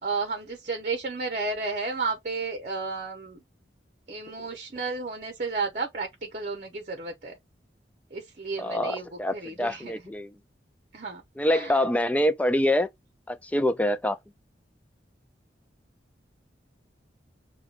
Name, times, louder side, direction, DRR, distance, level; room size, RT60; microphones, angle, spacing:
voice 1, 0.0-3.4 4.1-7.4 8.1-9.9 10.9-11.8, right 4 dB, 40° right, 0.8 m, -32 dB
voice 2, 8.6-10.3 11.4-12.9 13.3-14.2, left 1 dB, 10° left, 0.3 m, -25 dB
6.4 x 2.2 x 2.4 m
head